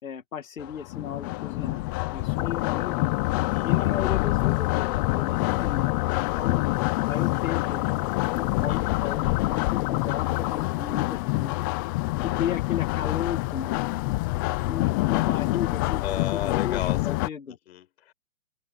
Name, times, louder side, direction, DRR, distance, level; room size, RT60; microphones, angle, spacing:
voice 1, 0.0-1.8 2.1-3.1 3.6-6.1 6.3-6.6 7.1-7.9 8.3-11.5 12.2-16.0 16.6-17.6, left 8 dB, 80° left, 2.4 m, -35 dB
sound 1, 0.6-17.3, left 21 dB, 15° left, 0.6 m, -27 dB
sound 2, 2.4-10.6, left 20 dB, 35° left, 4.7 m, -31 dB
voice 2, 3.5-4.0 8.7-8.8 16.0-17.2 17.5-18.1, left 11 dB, 50° left, 6.1 m, -34 dB
hypercardioid pair, 150°, 40 cm